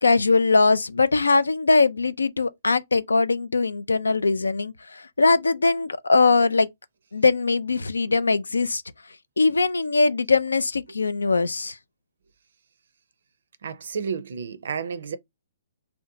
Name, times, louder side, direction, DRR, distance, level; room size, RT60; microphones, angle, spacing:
voice 1, 0.0-6.7 7.1-8.8 9.4-11.8, left 3 dB, 90° left, 0.3 m, -21 dB
voice 2, 13.6-15.2, right 6 dB, 70° right, 0.4 m, -31 dB
2.7 x 2.1 x 2.6 m
hypercardioid pair, 135°, 0 cm